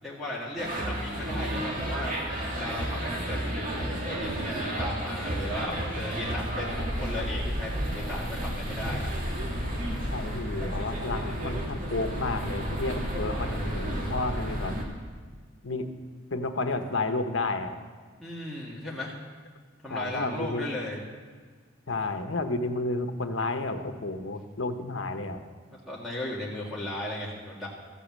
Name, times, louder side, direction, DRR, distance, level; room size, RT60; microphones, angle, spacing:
voice 1, 0.0-2.1 2.5-9.1 18.2-19.2 19.8-21.0 25.9-27.7, left 1 dB, ahead, -5 dB, 2.0 m, -36 dB
sound 1, 0.6-14.8, equal, 45° right, 2.4 m, -32 dB
voice 2, 10.1-14.8 15.6-15.9 16.3-17.8 19.9-20.7 21.9-25.4, left 2 dB, 80° left, 7 dB, 1.1 m, -31 dB
14.5 x 8.5 x 7.5 m, 1.5 s
head